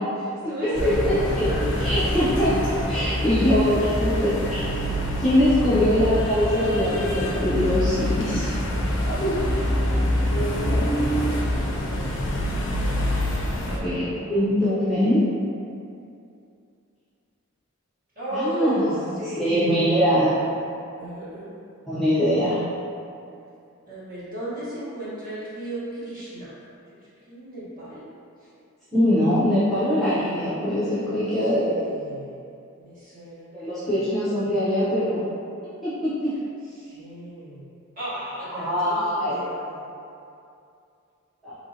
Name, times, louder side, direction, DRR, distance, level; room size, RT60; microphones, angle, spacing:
voice 1, 0.0-1.8 2.1-2.2 3.3-3.5 4.0-4.3 10.1-11.0 11.5-12.2 13.6-14.5 18.2-20.4 21.0-21.5 23.9-26.5 26.9-27.0 27.3-28.0 31.3-32.5 32.8-34.0 36.8-39.9, right 1 dB, 40° right, -11 dB, 1.0 m, -35 dB
voice 2, 0.6-0.9 1.3-1.5 1.8-4.8 5.2-8.5 9.0-9.4 13.7-15.3 18.3-20.3 21.9-22.6 28.9-31.8 33.5-35.3 35.8-36.3 38.5-39.4 41.4-41.5, equal, ahead, -14 dB, 0.5 m, -23 dB
sound 1, 0.7-13.8, left 1 dB, 55° left, 0.4 m, -25 dB
3.1 x 2.6 x 2.6 m, 2.5 s
head